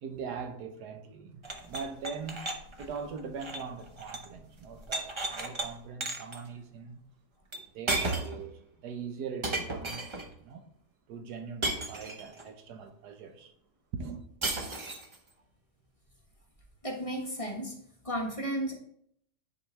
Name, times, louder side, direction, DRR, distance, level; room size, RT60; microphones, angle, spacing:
voice 1, 0.0-2.4 2.8-7.0 7.5-10.7 11.1-13.5 13.9-14.3, right 5 dB, 90° right, 1.4 m, -41 dB
sound 1, 1.4-4.3 4.6-5.7 6.0-6.4 7.5-7.6 7.9-8.4 9.4-10.3 11.6-12.4 14.4-15.2, right 2 dB, 35° right, 0.5 m, -34 dB
voice 2, 16.8-17.7 18.0-18.7, right 1 dB, 25° left, 1.2 m, -33 dB
10.0 x 4.7 x 3.2 m
omnidirectional pair, 1.7 m